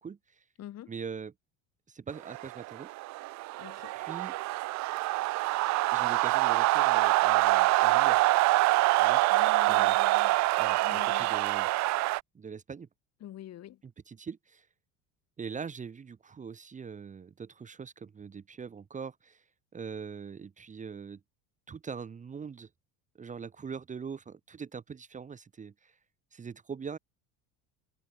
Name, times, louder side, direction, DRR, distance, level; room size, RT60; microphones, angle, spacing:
voice 1, 0.0-0.4 0.9-1.3 1.9-2.9 4.0-4.3 5.9-8.2 9.0-10.0 10.6-11.7 12.3-12.9 14.1-14.7 15.4-19.4 19.7-21.2 21.7-22.7 23.2-26.0 26.3-27.0, right 6 dB, 20° right, 1.6 m, -42 dB
voice 2, 0.6-0.9 3.6-3.9 9.3-10.4 10.8-11.3 13.2-13.8, left 12 dB, 40° left, 6.3 m, -46 dB
sound 1, 2.3-12.2, right 20 dB, 45° right, 0.6 m, -25 dB
cardioid pair, 150°, 39 cm